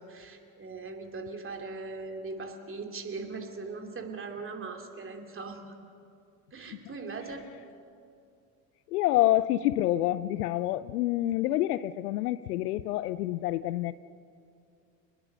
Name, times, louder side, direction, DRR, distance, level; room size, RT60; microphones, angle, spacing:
voice 1, 0.0-5.8 6.5-7.5, right 3 dB, 25° right, 2.9 m, -40 dB
voice 2, 8.9-13.9, left 14 dB, 65° left, 0.7 m, -27 dB
27.0 x 20.0 x 6.5 m
figure-of-eight pair, 70°, 50 cm